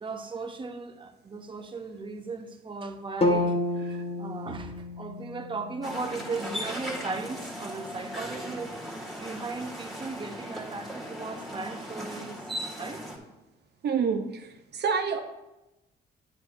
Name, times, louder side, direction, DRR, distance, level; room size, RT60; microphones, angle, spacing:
voice 1, 0.0-3.6 3.8-8.8 9.2-12.4 12.8-13.0, right 4 dB, 25° right, 0.8 m, -37 dB
sound 1, 3.2-7.3, left 1 dB, 30° left, 1.2 m, -31 dB
sound 2, 5.8-13.2, equal, ahead, 2.0 m, -38 dB
voice 2, 13.8-15.2, right 6 dB, 55° right, 0.7 m, -28 dB
9.6 x 7.9 x 2.6 m
cardioid pair, 90°, 20 cm